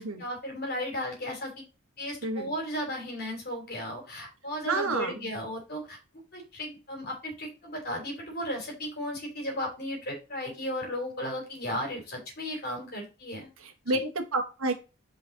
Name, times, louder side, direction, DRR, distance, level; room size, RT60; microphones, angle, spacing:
voice 1, 0.0-1.6 2.0-6.0 6.3-13.5, equal, 45° left, 1 dB, 3.2 m, -35 dB
voice 2, 2.2-2.5 4.6-5.2 13.6-14.7, right 2 dB, 75° right, 5 dB, 1.2 m, -29 dB
5.9 x 5.1 x 3.9 m, 0.30 s
head